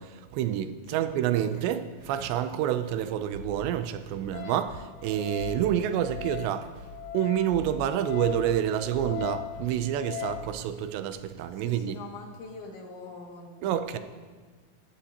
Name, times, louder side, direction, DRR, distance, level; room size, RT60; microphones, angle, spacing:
voice 1, 0.0-6.7 7.1-12.0 13.6-14.0, right 10 dB, 80° right, 2.8 m, -28 dB
sound 1, 1.5-1.6 2.0-2.5 2.8-3.0 3.3-3.7 4.0-4.4 4.6-5.0 5.4-5.8 6.0-6.4 6.7-7.0 7.2-7.3 7.5-8.4 8.9-9.2 9.5-9.7 10.2-10.7 11.0-11.1, left 3 dB, 45° right, 6.6 m, -44 dB
Wind instrument woodwind instrument, 4.3-10.5, left 12 dB, 65° left, 2.4 m, -40 dB
voice 2, 11.6-14.0, left 3 dB, 90° left, 4.5 m, -44 dB
22.0 x 16.5 x 2.9 m
omnidirectional pair, 5.1 m